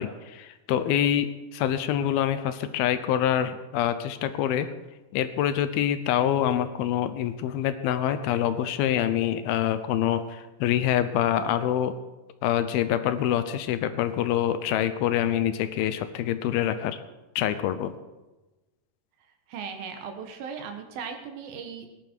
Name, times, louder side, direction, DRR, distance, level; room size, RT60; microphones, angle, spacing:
voice 1, 0.0-4.7 5.1-11.9 12.4-17.0 17.4-17.9, left 10 dB, 80° left, 11 dB, 2.6 m, -26 dB
voice 2, 19.5-21.9, right 6 dB, 70° right, 5 dB, 3.1 m, -37 dB
18.5 x 11.0 x 4.5 m, 1.1 s
omnidirectional pair, 4.5 m